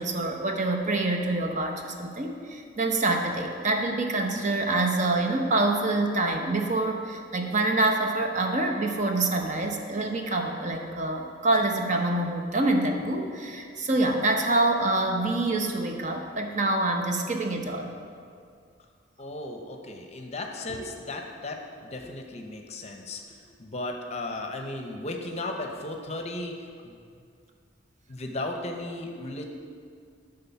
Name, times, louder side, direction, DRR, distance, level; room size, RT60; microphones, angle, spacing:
voice 1, 0.0-17.9, right 2 dB, 40° right, 3 dB, 0.7 m, -26 dB
voice 2, 19.2-27.0 28.1-29.4, left 2 dB, 35° left, 3 dB, 0.7 m, -36 dB
11.5 x 3.8 x 5.7 m, 2.2 s
head